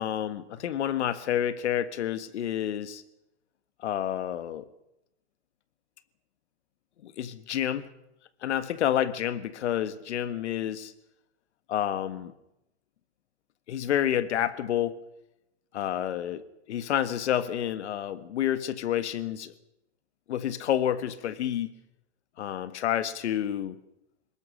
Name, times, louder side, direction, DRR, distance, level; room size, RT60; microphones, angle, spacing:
voice 1, 0.0-3.0 3.8-4.7 7.0-7.9 8.4-10.9 11.7-12.3 13.7-15.0 15.7-19.5 20.3-21.7 22.4-23.8, left 10 dB, 75° left, 12 dB, 1.7 m, -29 dB
23.5 x 20.0 x 6.3 m, 0.87 s
hypercardioid pair, 125°, 35 cm